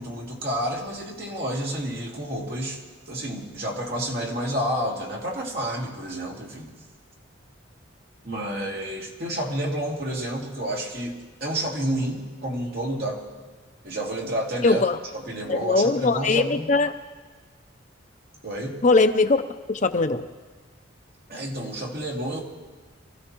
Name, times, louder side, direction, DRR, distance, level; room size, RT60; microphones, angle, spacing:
voice 1, 0.0-2.8 3.1-6.7 8.2-13.2 13.8-14.8 15.1-16.7 18.4-18.8 21.3-22.4, right 1 dB, 50° right, -2 dB, 2.6 m, -30 dB
voice 2, 14.6-15.0 15.5-16.9 18.8-19.4 19.7-20.3, left 3 dB, 40° left, 8 dB, 0.6 m, -20 dB
25.0 x 15.0 x 3.0 m, 1.4 s
head